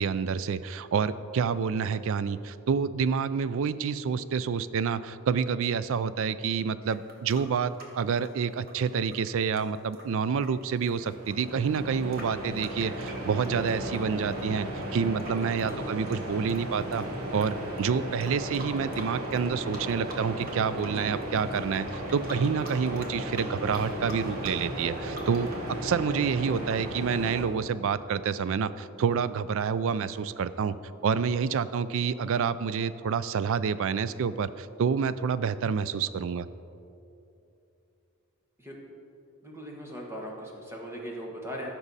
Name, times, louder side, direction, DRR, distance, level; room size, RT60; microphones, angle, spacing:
voice 1, 0.0-14.7 14.9-17.1 17.3-25.5 25.8-30.7 31.0-36.5, right 6 dB, 60° right, 15 dB, 0.3 m, -28 dB
sound 1, 6.9-14.0 14.3-17.5 17.8-17.9 18.2-19.5 19.7-20.5 20.8-25.7, right 1 dB, 40° right, 1.3 m, -46 dB
sound 2, 10.8-27.5, right 1 dB, 80° right, 1.4 m, -35 dB
voice 2, 15.6-16.2 20.8-21.1 38.6-38.8 39.4-41.7, equal, 10° right, -1 dB, 1.3 m, -40 dB
15.0 x 6.0 x 4.1 m, 2.7 s
head